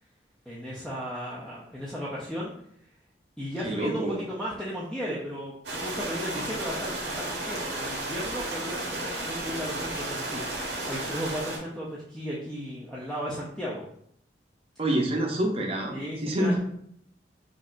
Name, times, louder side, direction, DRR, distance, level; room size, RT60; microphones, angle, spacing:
voice 1, 0.5-2.5 3.4-13.8 15.9-16.6, equal, 5° left, -7 dB, 0.5 m, -35 dB
voice 2, 3.6-4.2 14.8-16.0 16.2-16.8, right 1 dB, 30° right, 1 dB, 0.7 m, -27 dB
sound 1, 5.6-11.6, right 2 dB, 75° right, 1.1 m, -33 dB
5.1 x 2.7 x 2.5 m, 0.69 s
head